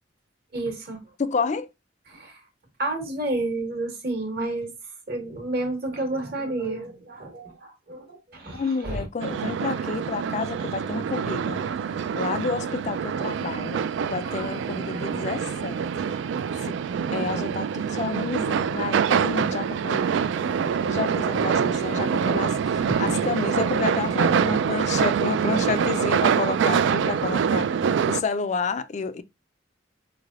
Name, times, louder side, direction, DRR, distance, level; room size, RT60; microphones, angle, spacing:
voice 1, 0.5-1.0 2.1-2.4 2.8-4.7 5.1-9.1 14.2-15.2 20.3-20.5 22.9-23.0, right 2 dB, 55° right, 1.4 m, -31 dB
voice 2, 1.2-1.7 8.5-11.6 12.1-13.8 14.1-15.8 16.6-16.8 17.1-20.0 20.8-27.7 28.1-29.2, left 4 dB, 40° left, 0.4 m, -30 dB
sound 1, 9.2-28.2, right 7 dB, 70° right, 0.3 m, -25 dB
4.5 x 3.3 x 2.4 m
head